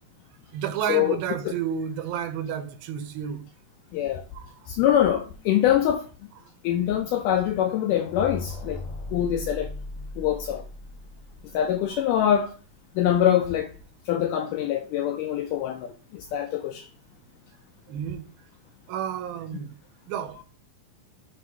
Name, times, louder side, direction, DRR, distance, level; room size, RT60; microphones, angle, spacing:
voice 1, 0.5-3.4 4.3-4.6 11.9-12.0 17.9-18.3 18.9-19.7 20.1-20.4, right 9 dB, 90° right, 2.5 m, -31 dB
voice 2, 3.9-4.2 4.7-6.1 6.6-8.8 9.1-9.7 10.2-10.6 11.5-12.5 13.0-13.7 14.1-16.9, left 10 dB, 85° left, 1.8 m, -24 dB
sound 1, 7.8-11.8, left 2 dB, 70° left, 2.7 m, -37 dB
8.0 x 2.9 x 4.7 m
omnidirectional pair, 4.2 m